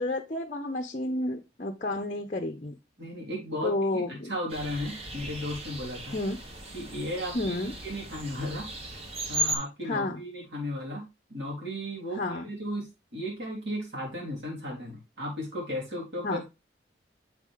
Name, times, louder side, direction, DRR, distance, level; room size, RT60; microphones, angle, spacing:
voice 1, 0.0-2.8 3.6-4.3 6.1-6.4 7.3-7.7 9.9-10.2 12.2-12.4 16.2-16.4, left 2 dB, 40° left, 4 dB, 0.6 m, -30 dB
voice 2, 3.0-6.2 6.7-9.0 9.3-11.0 11.3-16.5, equal, 70° right, -3 dB, 3.8 m, -35 dB
sound 1, 4.5-9.6, right 1 dB, 35° right, 1.1 m, -36 dB
7.5 x 4.9 x 3.7 m, 0.25 s
head